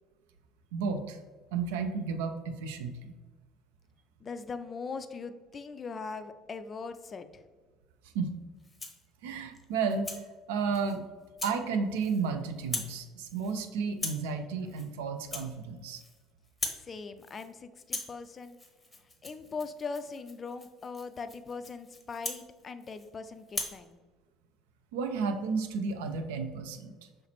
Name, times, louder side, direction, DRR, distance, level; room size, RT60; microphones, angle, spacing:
voice 1, 0.7-1.2 1.5-3.1 8.1-8.4 9.2-10.1 10.5-11.0 11.4-16.0 24.9-26.9, right 5 dB, 65° right, 7 dB, 0.4 m, -32 dB
voice 2, 4.2-7.4 16.8-18.6 19.2-24.0, left 4 dB, 30° left, 10 dB, 0.3 m, -40 dB
Rattle (instrument), 8.6-9.1 9.5-10.2 10.7-11.0 11.4-11.6 11.9-12.3 12.6-13.0 13.2-13.6 13.9-14.3 14.7-14.9 15.2-16.2 16.4-16.9 17.2-17.5 17.8-23.1 23.5-23.8, left 2 dB, 15° left, 0.7 m, -40 dB
5.6 x 3.2 x 3.0 m, 1.4 s
figure-of-eight pair, 60°, 0 cm